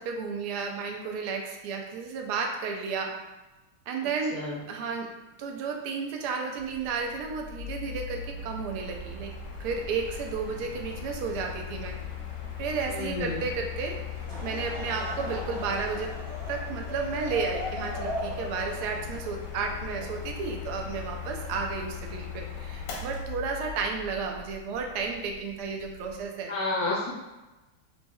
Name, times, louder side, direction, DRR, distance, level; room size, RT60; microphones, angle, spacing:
voice 1, 0.0-3.1 3.9-5.1 5.4-9.3 9.6-11.9 12.6-14.0 14.4-26.5, right 5 dB, 75° right, 2 dB, 0.9 m, -32 dB
Mechanical fan, 6.6-26.2, left 7 dB, 85° left, 1.7 m, -39 dB
voice 2, 12.9-13.4 26.5-27.1, left 2 dB, 70° left, -4 dB, 0.9 m, -30 dB
Laughter / Crowd, 14.1-20.5, equal, 25° right, 0.8 m, -38 dB
6.3 x 2.8 x 2.3 m, 1.1 s
omnidirectional pair, 2.3 m